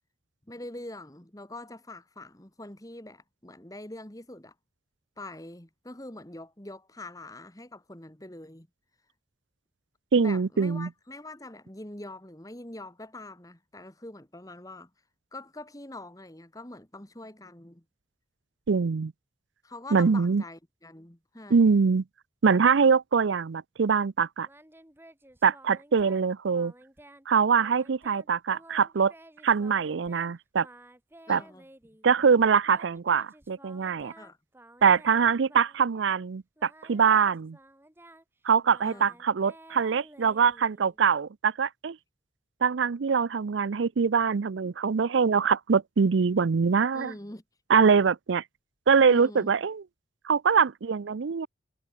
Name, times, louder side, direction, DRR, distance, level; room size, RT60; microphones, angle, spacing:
voice 1, 0.5-4.5 5.2-8.7 10.1-14.9 15.3-17.8 19.6-21.8 31.3-31.6 34.2-34.4 38.8-39.2 46.9-47.4 49.1-49.5, left 2 dB, 20° left, 1.7 m, -44 dB
voice 2, 10.1-10.9 18.7-19.1 19.9-20.4 21.5-22.0 22.4-24.5 25.4-26.7 27.3-29.1 29.4-30.7 31.3-31.4 32.0-34.1 34.8-37.6 38.4-42.0 42.6-47.1 47.7-48.4 48.9-49.8 50.2-51.5, right 6 dB, 75° right, 0.5 m, -23 dB
Singing, 24.4-26.3 26.5-27.3 27.5-28.3 28.5-30.3 30.6-32.1 32.7-36.3 36.6-41.0, right 1 dB, 10° right, 1.7 m, -53 dB
head